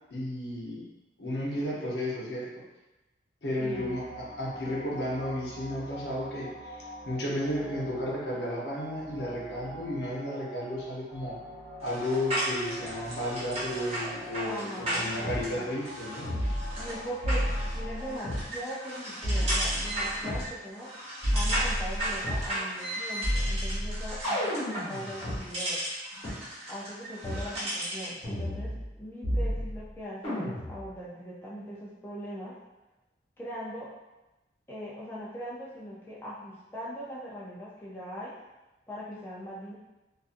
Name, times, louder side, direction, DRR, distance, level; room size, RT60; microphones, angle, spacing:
voice 1, 0.1-0.8 1.2-2.5 3.4-11.3 11.8-16.3, left 1 dB, 70° left, -5 dB, 0.8 m, -33 dB
voice 2, 3.6-3.9 14.4-15.7 16.7-20.9 21.3-25.8 26.7-28.7 29.0-32.6 33.4-33.9 34.7-38.4 38.9-39.7, equal, 15° left, -7 dB, 0.4 m, -40 dB
sound 1, 3.7-18.2, equal, 70° right, 0.8 m, -45 dB
sound 2, 11.8-28.2, right 1 dB, 35° right, 0.8 m, -35 dB
sound 3, 15.2-15.4 16.2-16.9 17.2-18.4 19.2-20.4 21.2-22.5 23.2-25.4 26.2-26.3 27.2-27.5 28.2-28.9 29.2-29.9 30.2-30.9, equal, 35° left, 1.2 m, -31 dB
2.6 x 2.4 x 2.4 m, 1.0 s
head